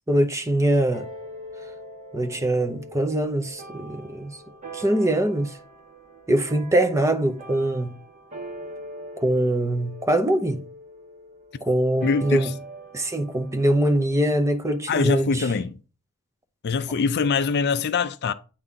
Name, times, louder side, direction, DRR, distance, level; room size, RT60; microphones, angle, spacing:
voice 1, 0.1-1.1 2.1-4.4 4.7-5.6 6.3-7.9 9.2-10.6 11.6-12.5 12.9-15.4, right 1 dB, 15° right, 0.7 m, -23 dB
sound 1, 0.9-15.7, right 2 dB, 30° right, 1.9 m, -42 dB
voice 2, 12.0-12.5 14.9-15.8 16.6-18.3, left 5 dB, 50° left, 0.4 m, -23 dB
8.8 x 4.1 x 3.6 m
head